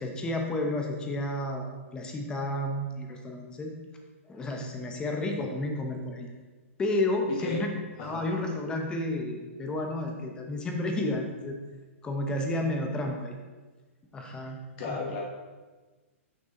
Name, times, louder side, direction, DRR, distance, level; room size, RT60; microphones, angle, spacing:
voice 1, 0.0-3.7 4.3-6.3 6.8-7.7 8.0-11.6 12.0-13.4 14.1-14.6 14.8-15.0, left 1 dB, 10° left, 3 dB, 0.7 m, -31 dB
voice 2, 7.3-7.6 8.0-8.3 14.4-14.5 14.8-15.2, left 4 dB, 40° left, -1 dB, 1.2 m, -34 dB
6.1 x 5.4 x 3.8 m, 1.3 s
hypercardioid pair, 150°, 8 cm